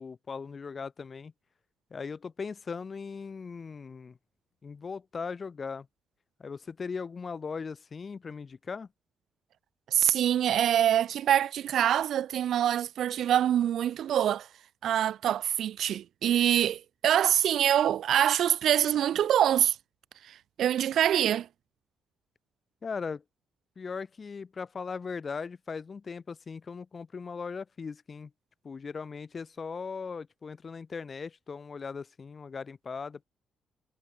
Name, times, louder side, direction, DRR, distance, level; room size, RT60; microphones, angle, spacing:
voice 1, 0.0-1.3 1.9-4.2 4.6-5.9 6.4-8.9 22.8-23.2 23.8-28.3 28.6-33.2, left 5 dB, 40° left, 1.3 m, -38 dB
voice 2, 9.9-14.5 14.8-19.8 20.2-21.5, right 10 dB, 70° right, 0.3 m, -25 dB
cardioid pair, 90°, 0 cm